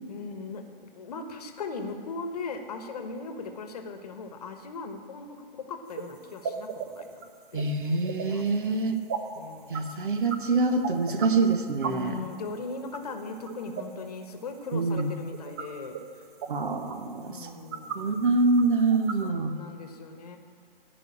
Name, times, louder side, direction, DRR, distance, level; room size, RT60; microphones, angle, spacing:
voice 1, 0.1-0.6 0.9-7.2 7.5-8.0 8.3-8.4 9.3-10.0 11.8-16.0 17.2-18.2 19.2-20.4, left 4 dB, 40° left, 6 dB, 1.3 m, -39 dB
sound 1, 5.9-6.0 6.4-8.2 9.1-9.4 9.6-9.9 10.2-10.3 10.8-11.3 11.6-11.9 12.5-12.6 12.8-13.9 15.0-15.1 15.3-15.7 15.9-16.0 16.4-16.5 16.9-17.0 17.5-17.9 18.2-18.3 18.6-18.7 18.9-19.1, right 7 dB, 15° right, 0.5 m, -34 dB
voice 2, 7.5-9.0 9.7-12.2 14.7-15.1 16.5-17.5 17.9-19.6, right 3 dB, 60° right, 7 dB, 1.4 m, -25 dB
15.0 x 5.5 x 8.6 m, 2.5 s
figure-of-eight pair, 135°, 29 cm